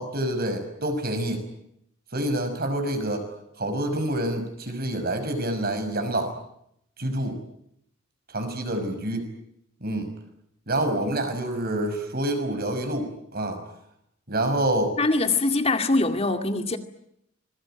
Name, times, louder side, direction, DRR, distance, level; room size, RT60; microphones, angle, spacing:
voice 1, 0.0-1.4 2.1-3.3 3.6-6.4 7.0-7.4 8.3-9.3 9.8-10.1 10.7-13.6 14.3-15.0, right 1 dB, 50° right, 5.9 m, -27 dB
voice 2, 15.0-16.8, left 2 dB, 30° left, 2.2 m, -23 dB
26.5 x 22.0 x 9.0 m
head